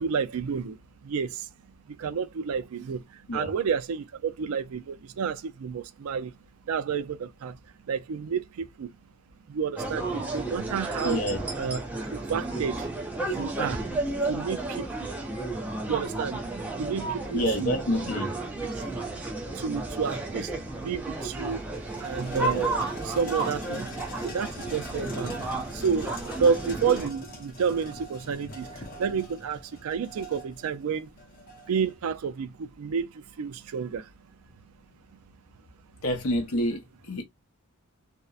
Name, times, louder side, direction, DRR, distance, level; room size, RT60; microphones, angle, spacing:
voice 1, 0.0-1.5 1.9-6.3 6.7-7.6 7.8-8.9 9.5-11.2 11.6-11.8 12.1-12.9 13.3-13.9 14.3-15.1 15.9-16.4 16.8-17.8 18.8-18.9 19.5-21.6 22.0-22.7 23.0-23.9 24.2-31.1 31.7-34.1, right 6 dB, 80° right, 0.4 m, -30 dB
sound 1, 9.8-27.1, right 2 dB, 5° right, 0.5 m, -32 dB
voice 2, 11.0-11.4 17.3-18.3 36.0-37.2, equal, 80° left, 0.7 m, -28 dB
sound 2, 20.8-20.9 21.3-32.0, equal, 40° left, 0.7 m, -43 dB
2.8 x 2.0 x 2.3 m
head